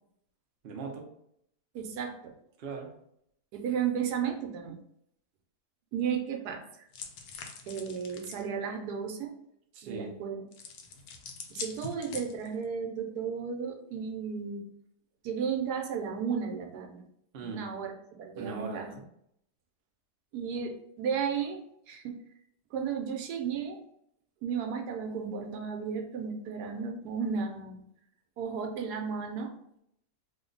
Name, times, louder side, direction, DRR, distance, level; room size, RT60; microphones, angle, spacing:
voice 1, 0.6-1.1 2.6-2.9 9.7-10.1 17.3-17.7 18.4-19.0, right 4 dB, 60° right, 1 dB, 0.6 m, -39 dB
voice 2, 1.7-2.3 3.5-4.8 5.9-6.8 7.7-9.3 9.8-10.4 11.5-14.7 15.2-17.0 17.4-17.9 18.2-18.9 20.3-21.6 21.9-22.1 22.7-23.8 24.4-27.8 28.4-29.5, right 6 dB, 85° right, 3 dB, 1.1 m, -34 dB
sound 1, 6.9-8.5 10.5-12.6, left 5 dB, 80° left, 1.1 m, -43 dB
3.0 x 2.1 x 3.7 m, 0.74 s
omnidirectional pair, 1.7 m